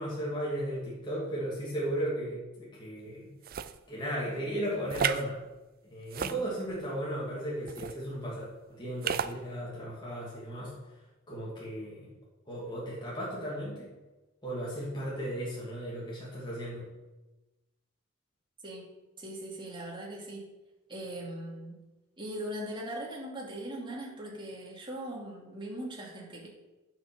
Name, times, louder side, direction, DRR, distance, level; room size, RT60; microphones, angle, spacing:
voice 1, 0.0-3.3 3.9-5.4 5.8-10.7 11.3-12.1 12.5-13.9 14.4-16.9, right 1 dB, 20° left, -7 dB, 2.7 m, -35 dB
sound 1, 3.4-3.8 4.9-5.2 6.1-6.8 7.7-8.0 9.0-9.3, right 7 dB, 45° right, 0.4 m, -32 dB
voice 2, 19.2-20.5 20.9-21.8 22.2-26.5, right 1 dB, 25° right, -3 dB, 2.6 m, -40 dB
9.2 x 6.0 x 7.1 m, 1.1 s
head